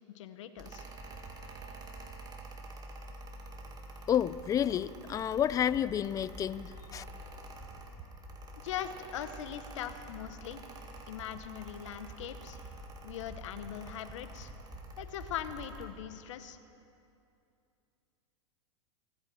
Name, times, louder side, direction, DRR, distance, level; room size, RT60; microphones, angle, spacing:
voice 1, 0.1-0.9 8.6-10.6 11.1-12.6 13.0-14.5 15.0-16.6, left 10 dB, 75° left, 11 dB, 1.0 m, -41 dB
Mechanical fan, 0.6-15.9, right 2 dB, 25° right, 1.8 m, -47 dB
voice 2, 4.1-7.0, left 9 dB, 20° left, 17 dB, 0.4 m, -30 dB
25.0 x 8.7 x 6.1 m, 2.7 s
hypercardioid pair, 115°, 16 cm